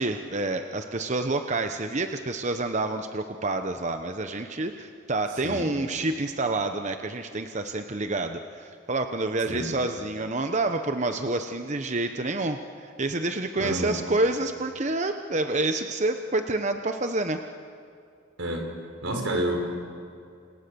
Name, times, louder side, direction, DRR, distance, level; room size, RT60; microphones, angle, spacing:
voice 1, 0.0-17.4, right 2 dB, 40° right, 7 dB, 1.0 m, -28 dB
voice 2, 13.6-14.0 18.4-18.7 19.0-19.6, right 1 dB, 85° right, 3 dB, 5.3 m, -28 dB
29.0 x 28.0 x 7.0 m, 2.4 s
head